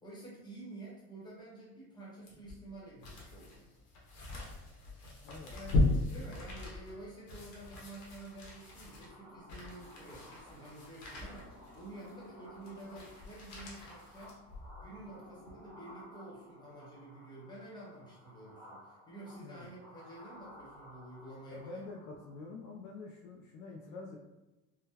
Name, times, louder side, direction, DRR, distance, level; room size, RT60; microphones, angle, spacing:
voice 1, 0.0-3.7 5.5-14.4 14.8-21.8, right 2 dB, 10° left, -5 dB, 0.9 m, -50 dB
sound 1, 2.3-14.9 15.4-15.5, left 2 dB, 70° left, 1.1 m, -38 dB
sound 2, 7.2-22.6, left 1 dB, 20° right, 1.1 m, -56 dB
voice 2, 21.5-24.2, left 3 dB, 55° left, -1 dB, 0.5 m, -46 dB
3.8 x 2.1 x 2.7 m, 1.0 s
cardioid pair, 155°, 36 cm